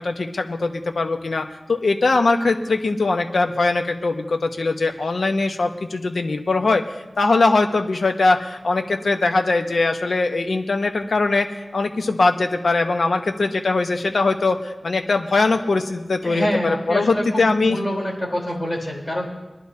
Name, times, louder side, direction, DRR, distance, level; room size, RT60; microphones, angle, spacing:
voice 1, 0.0-6.8 7.2-11.5 11.7-17.8, left 3 dB, 80° left, 5 dB, 1.1 m, -21 dB
voice 2, 16.2-19.2, equal, 25° left, -3 dB, 3.9 m, -26 dB
24.5 x 11.0 x 2.8 m, 1.2 s
wide cardioid pair, 80°, 0 cm